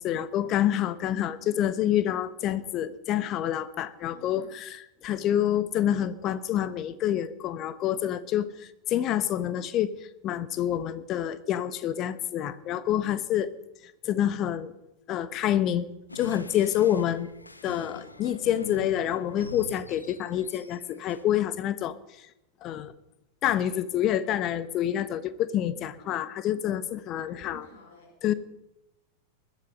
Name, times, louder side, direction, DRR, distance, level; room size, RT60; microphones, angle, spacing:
voice 1, 0.0-9.9 10.2-13.5 14.0-14.7 15.1-15.9 16.1-17.3 17.6-22.0 22.6-22.9 23.4-27.7 28.2-28.3, left 11 dB, 35° left, 14 dB, 1.1 m, -27 dB
voice 2, 4.1-4.6 26.0-26.3 27.2-28.1, left 2 dB, 55° left, 2 dB, 4.1 m, -52 dB
sound 1, 16.1-21.2, left 2 dB, 85° left, 1.3 m, -44 dB
21.0 x 12.5 x 5.4 m, 0.90 s
figure-of-eight pair, 90°, 0 cm